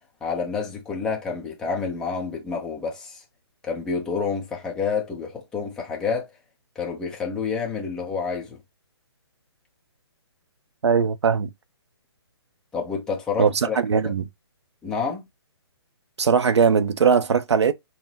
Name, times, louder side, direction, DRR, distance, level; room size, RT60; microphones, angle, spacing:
voice 1, 0.2-3.2 3.6-6.3 6.8-8.6 12.7-13.8 14.0-14.1 14.8-15.2, left 5 dB, 5° left, 0.6 m, -28 dB
voice 2, 10.8-11.5 13.4-14.3 16.2-17.7, right 6 dB, 80° right, 0.6 m, -20 dB
5.6 x 2.1 x 2.8 m
hypercardioid pair, 165°, 14 cm